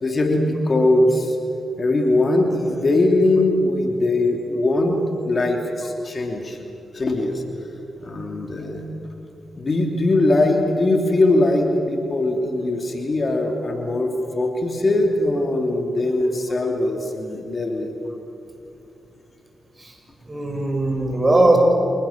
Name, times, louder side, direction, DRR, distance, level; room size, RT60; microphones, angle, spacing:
voice 1, 0.0-1.4 1.8-5.0 5.3-6.6 6.9-7.4 8.0-8.8 9.6-14.1 14.3-17.9, left 2 dB, 45° left, 3 dB, 3.1 m, -20 dB
voice 2, 20.3-21.6, right 2 dB, 30° right, 2 dB, 7.0 m, -19 dB
27.0 x 20.0 x 7.4 m, 2.8 s
supercardioid pair, 45°, 0 cm